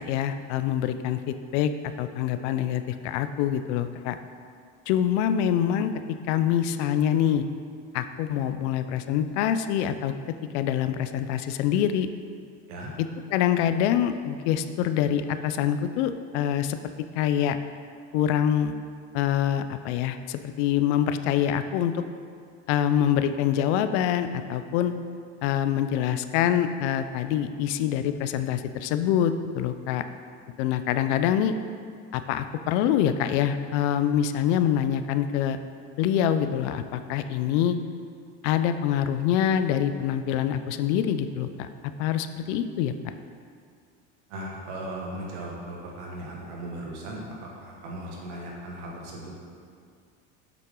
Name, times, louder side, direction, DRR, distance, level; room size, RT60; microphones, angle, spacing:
voice 1, 0.0-1.7 2.0-4.2 4.9-7.4 7.9-12.1 13.0-16.8 17.2-17.6 18.1-18.7 19.1-22.0 22.7-25.0 25.4-30.1 30.6-31.5 32.1-35.6 36.0-37.8 38.4-41.7 42.0-43.1, left 10 dB, 75° left, 10 dB, 0.6 m, -25 dB
voice 2, 44.3-49.4, right 1 dB, 90° right, -3 dB, 1.8 m, -37 dB
7.9 x 5.8 x 3.8 m, 2.2 s
supercardioid pair, 125°, 34 cm